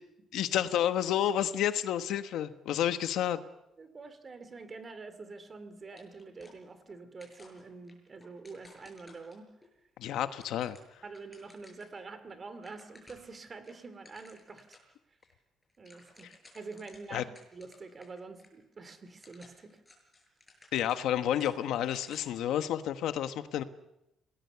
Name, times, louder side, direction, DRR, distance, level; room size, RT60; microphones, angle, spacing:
voice 1, 0.3-3.4 10.0-11.0 17.1-17.2 20.7-23.6, left 11 dB, 85° left, 10 dB, 1.3 m, -30 dB
voice 2, 3.8-9.5 11.0-14.8 15.8-16.3 16.5-19.8, right 4 dB, 30° right, 11 dB, 2.5 m, -46 dB
sound 1, 5.9-6.9 7.2-9.7 10.2-12.0 12.3-12.4 12.6-13.3 13.6-14.9 15.2-15.3 15.6-18.1 18.4-18.5 19.0-22.5, left 2 dB, 10° left, 7.1 m, -58 dB
27.0 x 19.0 x 7.0 m, 0.89 s
cardioid pair, 130°, 0 cm